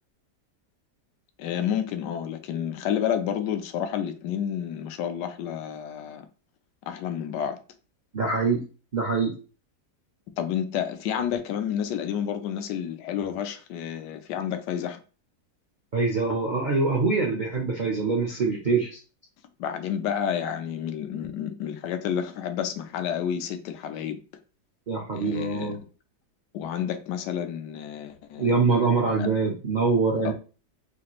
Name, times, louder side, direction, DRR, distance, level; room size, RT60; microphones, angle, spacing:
voice 1, 1.4-6.3 6.9-7.6 10.4-15.0 19.6-24.2 25.1-25.7 26.5-28.5 29.2-29.3 30.2-30.3, left 9 dB, 85° left, 1.2 m, -30 dB
voice 2, 8.1-8.6 8.9-9.3 15.9-19.0 24.9-25.8 28.4-30.3, right 4 dB, 60° right, 0.5 m, -24 dB
4.2 x 2.4 x 2.9 m
omnidirectional pair, 1.8 m